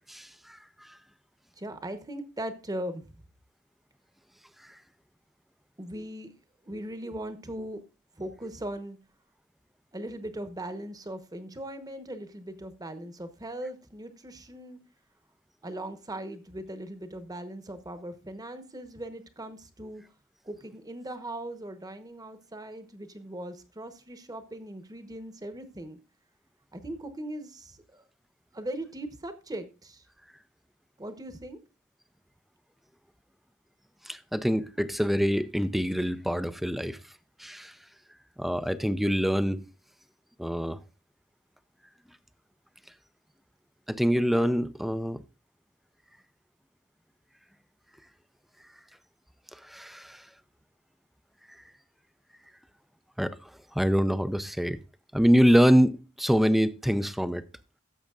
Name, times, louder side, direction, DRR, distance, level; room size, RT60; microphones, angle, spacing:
voice 1, 0.1-1.0 4.6-4.7 34.0-37.0 37.4-37.7 38.4-39.7 40.4-40.8 43.9-45.2 49.5-50.3 53.2-54.8 55.1-57.5, equal, ahead, 0.4 m, -25 dB
voice 2, 1.6-3.1 5.8-6.3 6.6-7.8 8.2-9.0 9.9-14.8 15.6-20.0 20.4-26.0 26.7-28.0 28.5-30.0 31.0-31.6, right 1 dB, 20° right, 1.0 m, -39 dB
15.5 x 7.2 x 2.4 m
head